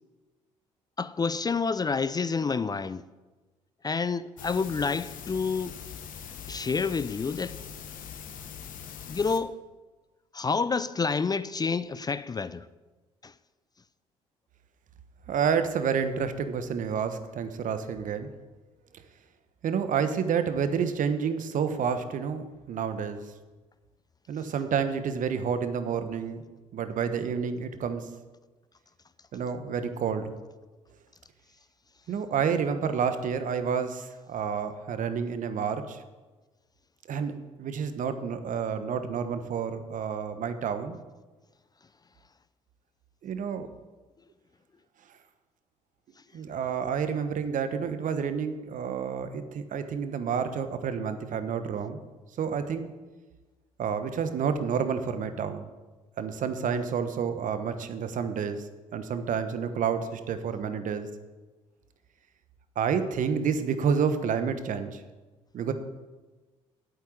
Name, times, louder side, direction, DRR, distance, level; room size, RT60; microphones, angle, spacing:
voice 1, 1.0-3.0 3.8-5.8 6.5-7.6 9.1-9.6 10.3-12.7 13.2-13.3, left 5 dB, 25° left, 0.5 m, -28 dB
sound 1, 4.4-9.4, left 8 dB, 60° left, 1.3 m, -42 dB
voice 2, 15.3-18.3 19.6-23.3 24.3-26.4 26.7-28.1 29.3-30.3 32.1-36.0 37.1-41.0 43.2-43.7 46.3-52.0 52.4-52.9 53.8-55.7 56.2-61.1 62.8-65.0 65.5-65.7, right 6 dB, 55° right, 1.2 m, -29 dB
8.5 x 8.1 x 8.6 m
hypercardioid pair, 55°, 16 cm